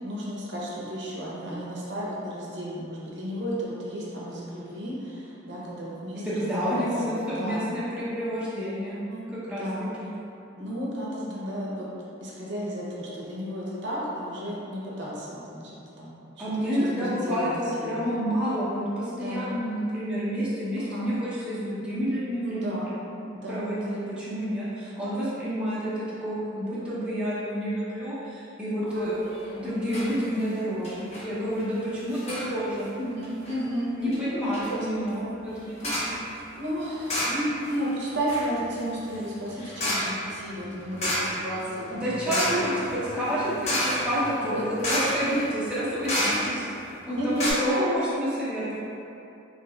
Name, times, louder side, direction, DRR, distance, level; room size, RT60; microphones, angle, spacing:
voice 1, 0.0-7.7 9.1-9.9 10.6-11.9 12.2-15.6 16.0-16.5 17.0-18.2 19.2-19.5 20.8-21.1 22.4-22.9 23.3-24.0 28.8-29.1 32.9-35.3 35.6-35.7 36.6-42.4 44.4-44.6 46.2-46.7 47.1-47.8, equal, 60° right, -6 dB, 0.7 m, -33 dB
voice 2, 6.1-9.1 9.3-9.6 10.0-10.1 16.4-22.8 23.5-29.2 29.5-32.9 34.0-36.2 41.9-46.6 47.0-48.8, equal, 5° right, -11 dB, 0.7 m, -29 dB
sound 1, 29.2-29.6 29.9-30.1 30.4-30.5 30.8-31.3 32.1-32.5 33.2-33.6 34.1-34.2 34.5-34.8 35.8-36.2 37.1-37.7 38.0-46.8 47.1-47.2 47.4-47.5, left 1 dB, 35° left, 0.7 m, -30 dB
4.0 x 3.0 x 2.2 m, 2.7 s
head